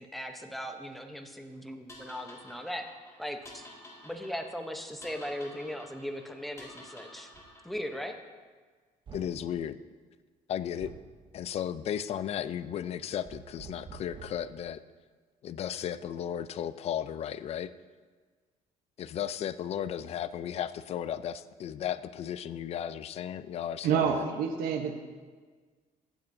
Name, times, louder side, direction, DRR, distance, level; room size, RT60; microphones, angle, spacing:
voice 1, 0.0-2.9 3.2-3.7 4.0-7.3 7.6-8.2, equal, ahead, 5 dB, 0.7 m, -38 dB
sound 1, 1.9-8.1, left 1 dB, 20° left, 1.8 m, -51 dB
sound 2, 7.3-7.5 9.1-9.4 10.8-11.1 13.2-14.5, right 6 dB, 35° right, 0.7 m, -48 dB
voice 2, 9.1-9.8 10.5-10.9 11.3-14.8 15.4-17.7 19.0-24.2, left 9 dB, 45° left, 14 dB, 0.4 m, -35 dB
voice 3, 23.8-24.9, right 7 dB, 80° right, 5 dB, 0.9 m, -27 dB
15.5 x 8.7 x 2.6 m, 1.5 s
cardioid pair, 135°, 15 cm